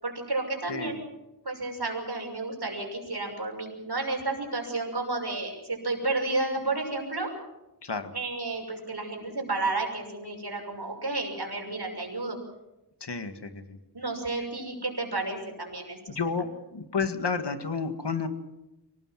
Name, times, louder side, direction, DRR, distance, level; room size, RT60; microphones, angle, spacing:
voice 1, 0.0-1.0 1.4-7.3 8.1-12.4 13.9-16.2, right 2 dB, 70° right, 3 dB, 6.3 m, -31 dB
voice 2, 7.8-8.1 13.0-13.8 16.1-16.5 16.7-18.3, left 5 dB, 80° left, 8 dB, 2.0 m, -31 dB
24.5 x 19.5 x 7.6 m, 0.95 s
wide cardioid pair, 50°, 41 cm